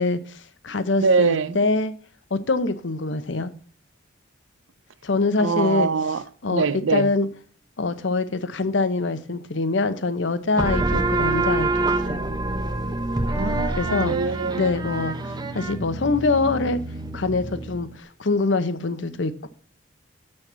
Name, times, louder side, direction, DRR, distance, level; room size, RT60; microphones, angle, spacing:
voice 1, 0.0-1.9 2.3-3.5 5.0-5.9 6.4-7.3 7.8-12.2 13.7-14.1 14.5-16.8 17.1-19.5, left 3 dB, 70° left, 0.8 m, -24 dB
voice 2, 1.0-1.6 5.4-6.2 6.5-7.1 13.3-14.6, right 5 dB, 80° right, 0.6 m, -23 dB
sound 1, 10.6-17.9, right 2 dB, 20° right, 0.7 m, -26 dB
6.4 x 5.9 x 7.3 m
head